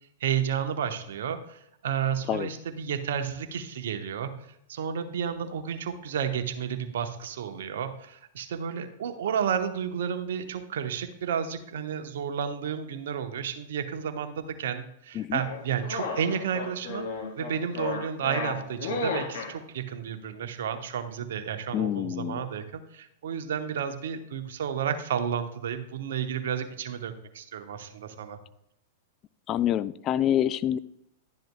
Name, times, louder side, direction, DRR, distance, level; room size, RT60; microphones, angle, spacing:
voice 1, 0.2-4.3 4.7-17.1 17.4-28.4, right 8 dB, 60° right, 8 dB, 0.9 m, -31 dB
sound 1, 15.4-19.5, left 4 dB, 55° left, 3.1 m, -33 dB
voice 2, 21.7-22.4 29.5-30.8, left 11 dB, 30° left, 15 dB, 0.3 m, -26 dB
11.5 x 10.5 x 2.2 m, 0.79 s
figure-of-eight pair, 100°, 0 cm